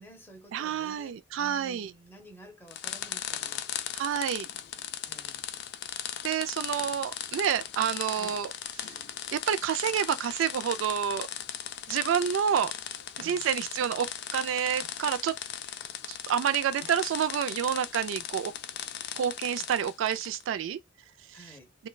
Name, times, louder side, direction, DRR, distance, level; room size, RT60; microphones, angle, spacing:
voice 1, 0.0-3.7 5.0-5.4 6.4-6.7 8.1-8.4 13.2-13.5 21.3-21.7, right 1 dB, 10° left, 0.7 m, -51 dB
voice 2, 0.5-1.9 3.9-4.5 6.2-8.5 8.8-8.9 9.3-11.3 11.9-12.7 13.2-15.3 16.3-18.5 19.2-20.8, right 8 dB, 85° right, 0.3 m, -28 dB
sound 1, 2.7-20.4, left 10 dB, 55° left, 0.3 m, -38 dB
3.1 x 2.1 x 2.2 m
head